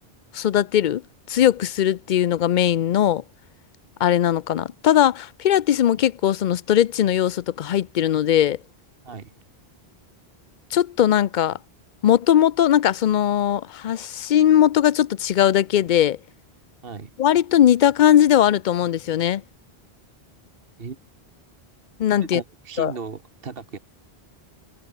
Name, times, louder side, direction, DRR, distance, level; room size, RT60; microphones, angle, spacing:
voice 1, 0.3-1.0 1.3-3.2 4.0-8.6 10.7-11.6 12.0-16.2 17.2-19.4 22.0-22.4 22.8-22.9, left 11 dB, 55° left, 0.6 m, -19 dB
voice 2, 16.8-17.1 20.8-21.0 22.2-23.8, right 5 dB, 65° right, 1.5 m, -36 dB
omnidirectional pair, 1.1 m